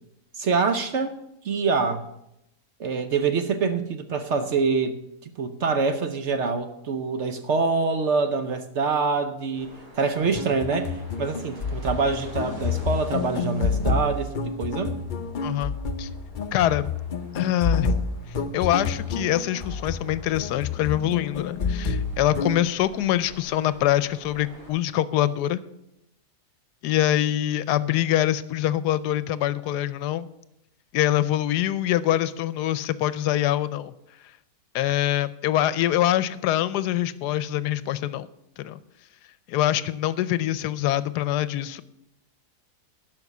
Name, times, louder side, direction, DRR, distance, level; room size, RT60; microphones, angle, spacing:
voice 1, 0.3-1.2 1.4-2.1 2.8-5.0 5.2-14.9, right 4 dB, 55° right, 9 dB, 0.9 m, -25 dB
sound 1, 9.5-24.7, equal, 20° right, 4.5 m, -48 dB
sound 2, 10.3-22.6, left 4 dB, 55° left, 0.5 m, -29 dB
voice 2, 15.4-15.7 16.0-16.1 16.5-16.9 17.3-17.9 18.5-25.6 26.8-30.3 30.9-33.9 34.7-38.3 38.6-38.8 39.5-41.8, left 13 dB, 85° left, 16 dB, 1.2 m, -24 dB
12.0 x 5.5 x 8.0 m, 0.84 s
omnidirectional pair, 1.7 m